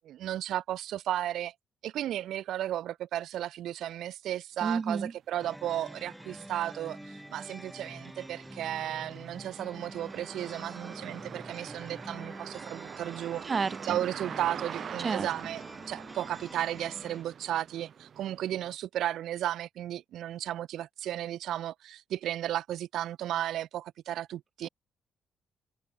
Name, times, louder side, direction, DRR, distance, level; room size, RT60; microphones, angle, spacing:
voice 1, 0.0-1.5 1.8-13.4 13.9-24.7, right 12 dB, 85° right, 0.7 m, -34 dB
voice 2, 4.6-5.1 13.4-14.0 15.0-15.3 24.6-24.7, right 5 dB, 40° right, 0.9 m, -30 dB
sound 1, 5.3-5.4 5.9-18.8, right 7 dB, 60° right, 2.7 m, -45 dB
sound 2, 5.4-17.2, equal, 5° right, 3.0 m, -47 dB
cardioid pair, 90°, 0 cm